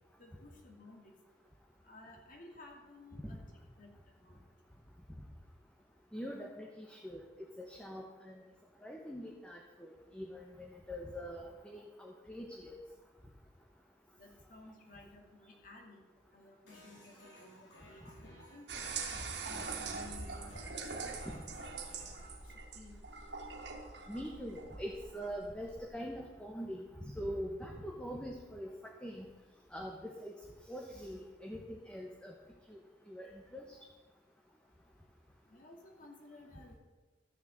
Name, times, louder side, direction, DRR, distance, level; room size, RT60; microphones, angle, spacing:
voice 1, 0.2-1.1 1.8-3.4 3.8-4.4 14.1-16.0 16.3-21.3 22.2-23.0 35.5-36.7, left 2 dB, 50° left, 1 dB, 2.5 m, -56 dB
voice 2, 6.1-7.2 7.6-8.4 8.8-12.8 21.2-21.4 24.1-29.3 29.7-30.3 30.7-32.3 32.7-32.8 33.1-33.6, equal, 5° left, -1 dB, 1.2 m, -43 dB
sound 1, 16.7-22.2, equal, 85° left, 4.6 m, -58 dB
sound 2, 18.7-25.9, right 4 dB, 70° right, 1.9 m, -43 dB
13.5 x 6.7 x 8.0 m, 1.2 s
head